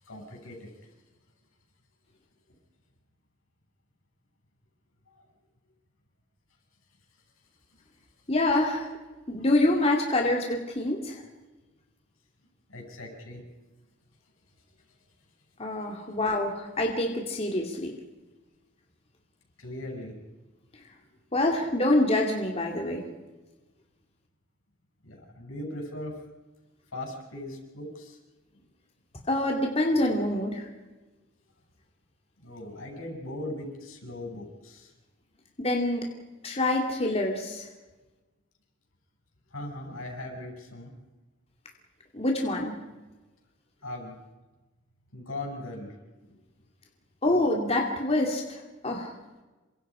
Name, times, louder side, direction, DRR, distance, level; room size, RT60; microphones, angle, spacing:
voice 1, 0.0-0.7 5.1-5.3 7.7-7.8 12.7-13.4 19.6-20.2 25.0-26.2 26.9-28.2 32.4-34.9 39.5-40.9 43.8-44.2 45.1-46.0 46.3-46.4, left 1 dB, 85° left, 2 dB, 7.4 m, -39 dB
voice 2, 8.3-8.9 9.3-11.2 15.6-17.9 21.3-23.0 29.3-30.7 35.6-36.1 36.4-37.7 42.1-42.7 47.2-49.1, left 1 dB, 30° left, 0 dB, 2.7 m, -26 dB
28.0 x 25.5 x 5.1 m, 1.2 s
head